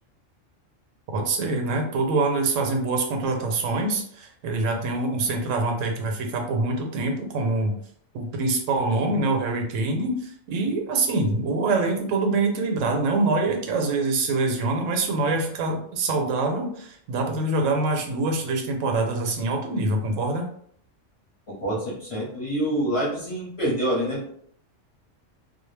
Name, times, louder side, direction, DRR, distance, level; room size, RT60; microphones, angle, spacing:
voice 1, 1.1-7.8 8.1-20.5, right 3 dB, 80° right, 3 dB, 0.9 m, -25 dB
voice 2, 21.5-24.3, right 1 dB, 35° left, -6 dB, 0.7 m, -26 dB
2.2 x 2.0 x 3.1 m, 0.64 s
omnidirectional pair, 1.3 m